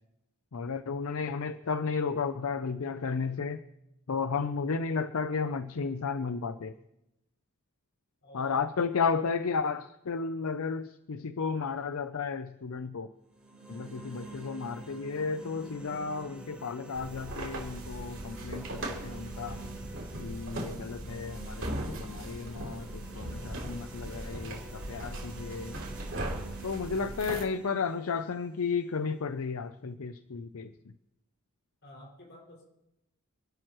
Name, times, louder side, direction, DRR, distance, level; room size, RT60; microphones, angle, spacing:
voice 1, 0.5-3.6 4.1-6.7 8.3-13.1 13.7-19.6 20.2-25.8 26.6-30.7, left 5 dB, 75° left, 11 dB, 0.6 m, -33 dB
voice 2, 8.2-8.6 31.8-32.6, left 1 dB, 55° left, -2 dB, 5.8 m, -51 dB
sound 1, 13.3-29.3, right 3 dB, 5° right, 3.9 m, -48 dB
sound 2, 16.9-27.4, right 1 dB, 60° right, 3.5 m, -39 dB
27.0 x 12.5 x 3.1 m, 0.88 s
head